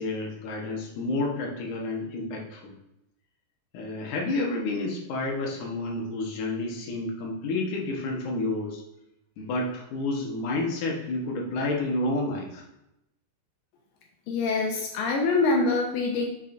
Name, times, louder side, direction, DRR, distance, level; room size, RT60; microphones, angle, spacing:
voice 1, 0.0-2.7 3.7-8.8 9.4-12.6, left 2 dB, 70° left, -1 dB, 2.0 m, -30 dB
voice 2, 14.3-16.2, left 3 dB, 85° left, 1 dB, 2.0 m, -24 dB
8.4 x 4.3 x 2.6 m, 0.87 s
omnidirectional pair, 4.9 m